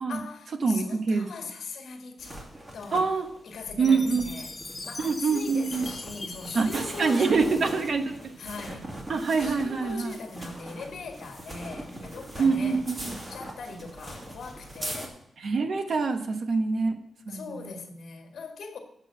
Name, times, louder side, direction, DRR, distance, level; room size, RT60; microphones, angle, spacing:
voice 1, 0.1-2.4 2.7-3.1 3.4-4.5 4.8-7.9 8.4-8.9 9.4-15.1 17.3-18.8, left 4 dB, 80° left, 1.7 m, -40 dB
voice 2, 0.6-1.3 2.9-3.3 3.8-4.3 5.0-5.9 6.5-8.2 9.1-10.1 12.4-13.1 15.4-17.0 17.3-17.6, right 4 dB, 60° right, 1.1 m, -25 dB
sound 1, 2.2-15.1, right 1 dB, 30° right, 2.1 m, -41 dB
Chime, 3.8-8.1, left 3 dB, 25° left, 0.7 m, -42 dB
8.0 x 5.5 x 7.4 m
wide cardioid pair, 115°, 0 cm